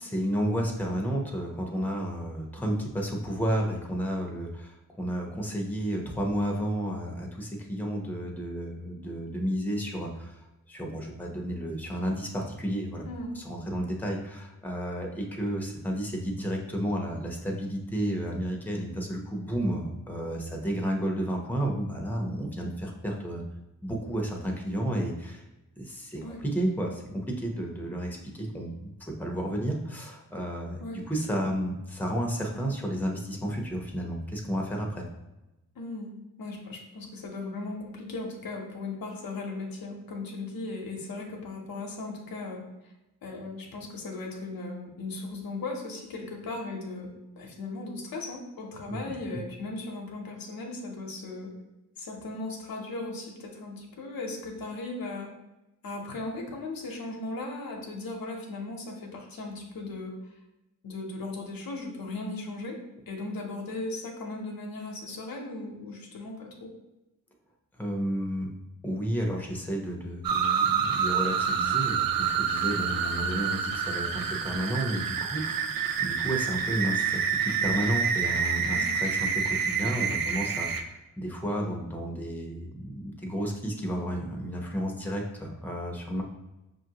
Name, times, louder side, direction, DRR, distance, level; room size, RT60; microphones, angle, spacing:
voice 1, 0.0-10.4 10.7-13.0 13.3-23.4 23.8-25.4 25.8-30.8 31.1-35.1 48.9-49.4 67.8-68.5 68.8-86.2, equal, 5° left, 1 dB, 0.8 m, -32 dB
voice 2, 35.8-36.1 36.4-42.7 43.2-47.1 47.4-51.5 52.0-55.3 55.8-60.2 60.8-62.8 63.1-66.7 78.7-78.9, left 2 dB, 85° left, 1 dB, 0.8 m, -37 dB
sound 1, 70.2-80.8, right 7 dB, 80° right, 0.5 m, -28 dB
5.5 x 2.5 x 2.8 m, 0.99 s
cardioid pair, 70°, 34 cm